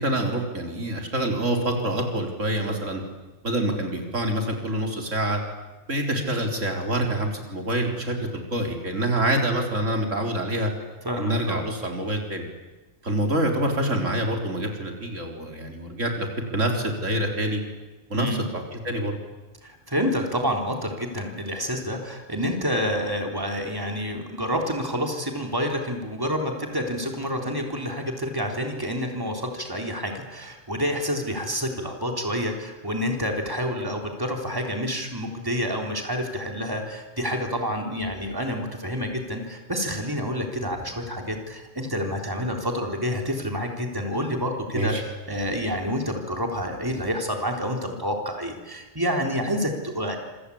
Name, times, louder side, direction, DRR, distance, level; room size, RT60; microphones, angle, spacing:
voice 1, 0.0-3.0 3.4-5.4 5.9-10.7 11.2-12.4 13.0-16.3 16.5-17.6 18.1-19.2 44.7-45.0, right 1 dB, 90° right, 2 dB, 4.5 m, -26 dB
voice 2, 11.0-11.7 18.1-18.4 19.6-45.0 45.3-50.2, equal, 15° right, 2 dB, 3.8 m, -28 dB
27.0 x 25.5 x 8.7 m, 1.1 s
omnidirectional pair, 1.3 m